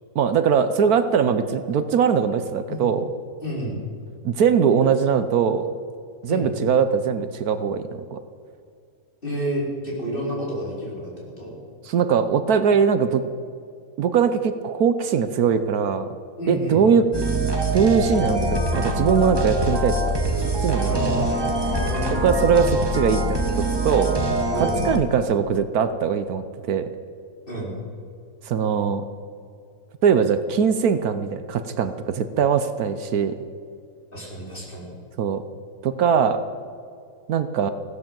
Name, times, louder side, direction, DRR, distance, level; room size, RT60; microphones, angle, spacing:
voice 1, 0.1-3.0 4.2-5.7 6.2-8.2 11.8-13.2 14.0-16.1 16.5-17.1 17.7-20.2 20.6-21.3 22.2-24.2 24.6-26.9 28.4-29.0 30.0-33.3 35.2-35.4 35.8-36.4 37.3-37.7, right 7 dB, 70° right, 11 dB, 1.2 m, -21 dB
voice 2, 3.4-3.8 6.3-6.5 9.2-11.1 11.4-11.5 16.4-16.9 20.8-22.5 24.5-24.8 27.5-27.7 34.1-34.9, right 1 dB, 35° left, -4 dB, 4.8 m, -30 dB
sound 1, 17.1-25.0, right 1 dB, 15° right, 1.5 m, -24 dB
16.5 x 11.5 x 7.6 m, 2.3 s
omnidirectional pair, 1.7 m